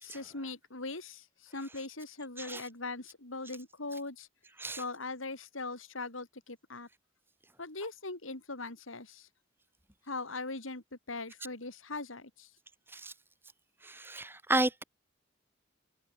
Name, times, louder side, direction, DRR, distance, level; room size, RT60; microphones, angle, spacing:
voice 1, 0.0-1.2 1.5-4.3 4.8-6.9 7.6-9.3 10.1-12.5, left 3 dB, 90° left, 4.0 m, -40 dB
voice 2, 13.8-14.8, right 2 dB, 10° right, 2.4 m, -32 dB
head